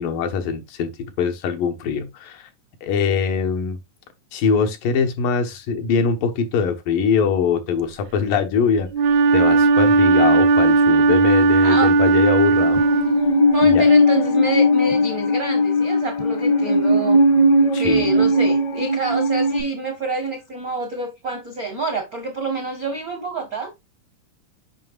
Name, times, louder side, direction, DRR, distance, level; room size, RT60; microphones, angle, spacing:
voice 1, 0.0-2.5 2.8-3.8 4.3-8.9 9.3-12.8 13.6-13.9 17.7-18.2, left 6 dB, 85° left, 2.8 m, -22 dB
Wind instrument woodwind instrument, 8.9-13.7, right 3 dB, 85° right, 1.5 m, -16 dB
Musical instrument, 12.8-19.6, left 1 dB, 60° left, 1.0 m, -18 dB
voice 2, 13.5-17.2 17.6-23.7, right 3 dB, 70° right, 0.8 m, -27 dB
7.4 x 5.6 x 2.3 m
omnidirectional pair, 3.8 m